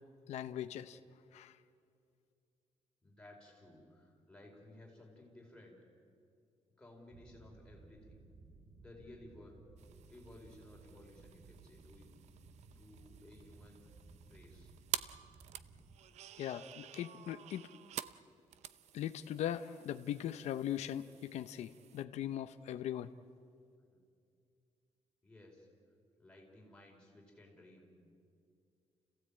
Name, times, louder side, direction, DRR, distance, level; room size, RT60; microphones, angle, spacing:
voice 1, 0.3-1.0 1.3-1.5 16.4-17.7 18.9-23.1, left 11 dB, 80° left, 10 dB, 0.7 m, -40 dB
voice 2, 3.0-5.8 6.8-8.2 8.8-9.5 10.1-12.1 12.7-13.9 14.2-14.7 23.9-24.0 25.2-25.7 26.2-27.9, left 1 dB, 10° left, -2 dB, 4.8 m, -57 dB
sound 1, 7.1-16.0, right 3 dB, 50° right, 2.3 m, -59 dB
sound 2, 9.8-22.0, right 11 dB, 75° right, 0.6 m, -49 dB
30.0 x 16.0 x 8.7 m, 2.4 s
cardioid pair, 170°, 11 cm